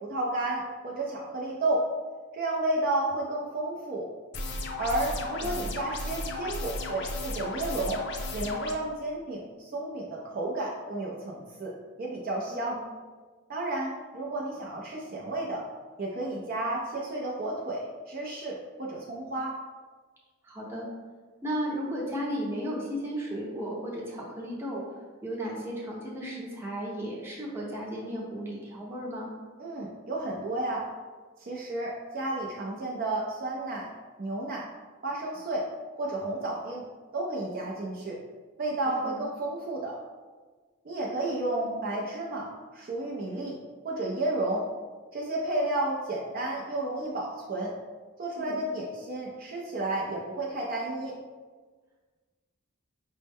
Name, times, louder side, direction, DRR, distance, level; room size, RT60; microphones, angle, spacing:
voice 1, 0.0-1.9 2.3-4.1 4.8-8.0 8.3-12.8 13.5-15.6 16.0-19.6 29.6-30.9 31.4-33.9 34.2-34.7 35.0-35.7 36.0-36.9 37.1-38.2 38.6-40.0 40.8-43.6 43.8-44.7 45.1-47.7 48.2-51.1, right 2 dB, 45° right, -3 dB, 0.4 m, -32 dB
sound 1, 4.3-8.7, left 2 dB, 55° left, 0.4 m, -35 dB
voice 2, 20.4-20.9 21.4-24.8 25.2-29.3 39.0-39.2 48.4-48.6, equal, 10° right, -5 dB, 0.8 m, -34 dB
5.3 x 2.0 x 3.5 m, 1.4 s
head